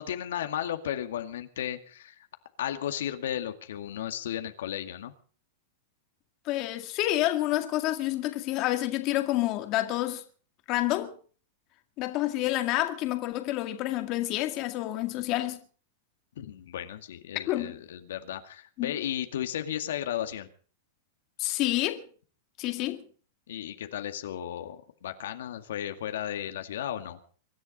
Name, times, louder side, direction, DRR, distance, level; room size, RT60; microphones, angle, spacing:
voice 1, 0.0-2.3 2.6-5.1 16.4-20.5 23.5-27.2, left 10 dB, 80° left, 2.1 m, -34 dB
voice 2, 6.5-10.2 10.7-11.1 12.0-15.6 17.5-17.8 18.8-18.9 21.4-22.0 22.6-23.0, left 16 dB, 40° left, 2.0 m, -28 dB
24.0 x 11.0 x 5.4 m
supercardioid pair, 150°, 0 cm